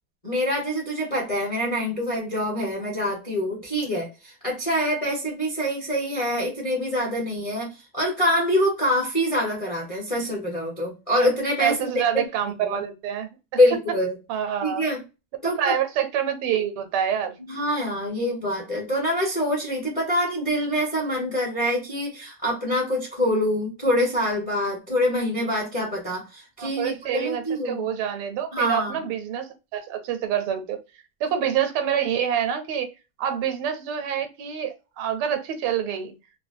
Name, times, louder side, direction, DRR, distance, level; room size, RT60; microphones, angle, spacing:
voice 1, 0.2-12.0 12.4-12.8 13.6-14.1 14.6-15.0 15.4-15.8 17.5-27.8 28.5-29.0, equal, 30° left, 0.6 m, -25 dB
voice 2, 11.6-13.3 14.3-14.8 15.6-17.3 26.6-30.8 31.2-32.9 33.2-36.1, right 9 dB, 85° right, 1.5 m, -27 dB
3.8 x 2.2 x 2.5 m
omnidirectional pair, 2.3 m